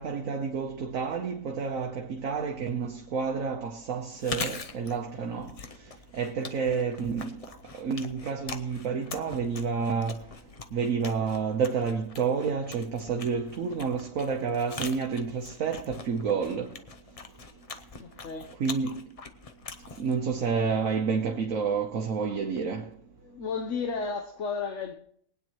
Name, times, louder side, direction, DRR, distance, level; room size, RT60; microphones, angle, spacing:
voice 1, 0.0-5.5 6.1-7.3 7.8-10.2 10.7-16.7 18.6-18.9 20.0-22.9, right 5 dB, 65° right, 1.3 m, -29 dB
Chewing mastication, 4.1-20.9, left 4 dB, 40° left, 0.5 m, -43 dB
voice 2, 18.0-18.5 23.2-24.9, left 5 dB, 55° left, 1.2 m, -33 dB
22.5 x 9.3 x 3.0 m
omnidirectional pair, 1.6 m